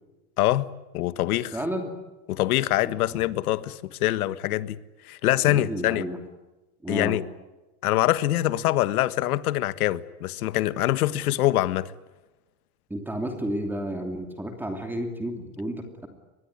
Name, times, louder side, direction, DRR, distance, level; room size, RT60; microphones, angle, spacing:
voice 1, 0.4-0.7 0.9-1.6 2.3-4.8 5.1-6.1 6.9-7.3 7.8-11.9, left 15 dB, 80° left, 1.5 m, -24 dB
voice 2, 1.5-1.9 2.8-3.2 5.5-6.2 6.8-7.2 12.9-16.1, equal, 5° right, 2.8 m, -32 dB
24.0 x 21.5 x 9.9 m
supercardioid pair, 155°, 44 cm